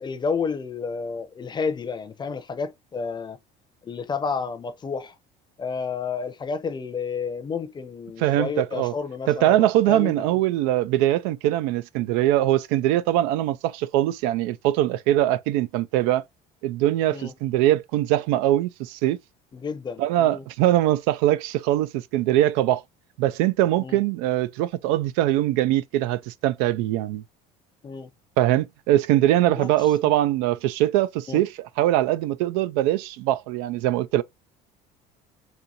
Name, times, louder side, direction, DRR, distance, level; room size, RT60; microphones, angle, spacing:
voice 1, 0.0-3.4 3.8-5.2 5.6-10.4 17.1-17.3 19.5-20.5 23.8-24.0 27.8-28.1 29.4-30.1 31.3-31.4, left 5 dB, 25° left, 0.6 m, -31 dB
voice 2, 8.2-8.9 9.3-16.2 16.6-19.2 20.0-22.8 23.2-27.2 28.4-31.5 31.8-34.2, right 14 dB, 90° right, 0.4 m, -22 dB
4.2 x 2.7 x 2.6 m
cardioid pair, 115°, 18 cm